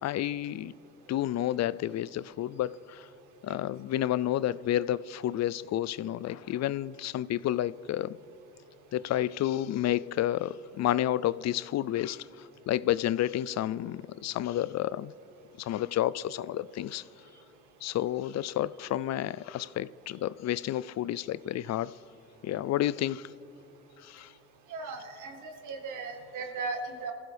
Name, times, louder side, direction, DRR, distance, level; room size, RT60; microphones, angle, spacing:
voice 1, 0.0-0.7 1.1-3.0 3.4-8.2 8.9-12.2 12.7-15.1 15.6-17.0 17.8-21.9 22.4-23.3 24.0-24.3, left 12 dB, 60° left, 0.4 m, -30 dB
voice 2, 24.7-27.1, right 4 dB, 85° right, 2.0 m, -37 dB
27.5 x 15.5 x 3.4 m
cardioid pair, 90°, 30 cm